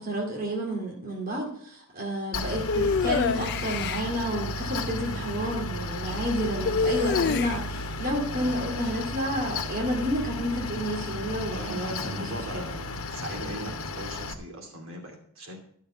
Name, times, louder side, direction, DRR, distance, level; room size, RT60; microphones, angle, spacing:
voice 1, 0.0-12.3 12.5-12.6, equal, 40° right, -1 dB, 2.4 m, -30 dB
Mechanical fan, 2.3-14.3, left 2 dB, 80° left, 1.0 m, -34 dB
sound 1, 2.7-4.1 6.6-7.8, left 5 dB, 50° left, 0.4 m, -26 dB
voice 2, 6.5-6.8 11.5-15.6, equal, 65° right, 2 dB, 2.7 m, -39 dB
13.0 x 6.5 x 5.7 m, 0.63 s
head